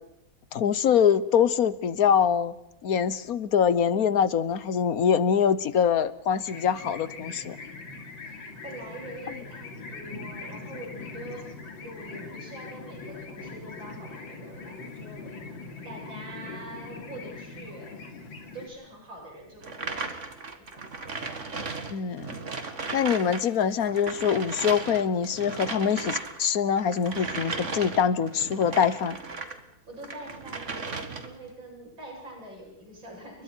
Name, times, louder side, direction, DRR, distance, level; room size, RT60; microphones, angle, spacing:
voice 1, 0.5-2.5 2.8-7.6 21.9-22.3 22.9-29.2, left 7 dB, 55° left, 15 dB, 1.3 m, -24 dB
sound 1, 6.5-18.7, left 4 dB, 90° left, 3.5 m, -41 dB
voice 2, 8.6-11.4 11.8-15.3 15.8-18.0 18.5-20.1 29.9-33.4, right 1 dB, 90° right, -1 dB, 8.9 m, -44 dB
sound 2, 19.6-29.6 30.0-31.4, right 4 dB, 40° right, 2.1 m, -36 dB
29.5 x 23.5 x 4.6 m, 0.83 s
omnidirectional pair, 2.0 m